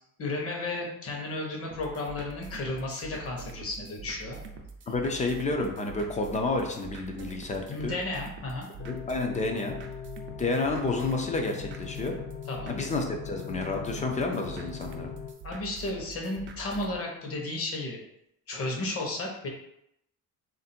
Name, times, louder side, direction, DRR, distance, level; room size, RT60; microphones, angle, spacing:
voice 1, 0.2-4.4 7.7-8.7 12.5-12.8 15.4-18.0 18.5-19.5, left 2 dB, 40° left, 0 dB, 1.0 m, -33 dB
sound 1, 1.7-17.0, right 4 dB, 35° right, 0.4 m, -45 dB
voice 2, 4.9-7.9 8.9-9.8 10.4-12.2 12.7-15.1, left 3 dB, 20° left, 3 dB, 0.4 m, -30 dB
sound 2, 8.8-15.3, left 9 dB, 80° left, 0.6 m, -40 dB
3.5 x 2.6 x 4.2 m, 0.80 s
cardioid pair, 160°, 35 cm